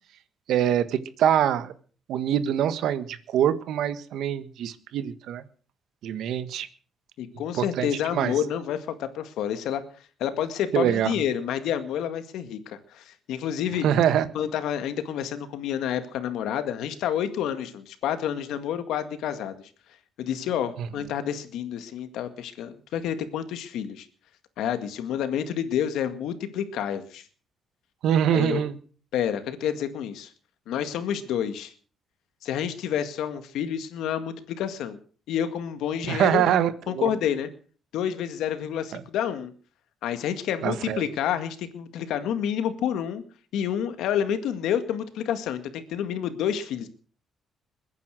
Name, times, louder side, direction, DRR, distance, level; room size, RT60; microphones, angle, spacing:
voice 1, 0.5-1.7 2.1-5.4 6.0-6.7 7.5-8.3 10.7-11.1 13.8-14.3 28.0-28.8 36.1-37.1 38.9-39.0 40.6-41.0, right 10 dB, 80° right, 13 dB, 1.5 m, -24 dB
voice 2, 7.2-9.8 10.2-13.9 14.3-19.7 20.2-24.1 24.6-27.2 28.3-28.6 29.1-30.3 30.7-31.7 32.4-35.0 35.3-36.4 36.9-37.5 37.9-39.5 40.0-43.2 43.5-46.9, left 9 dB, 85° left, 10 dB, 1.9 m, -29 dB
22.0 x 9.7 x 6.4 m, 0.42 s
cardioid pair, 90°, 0 cm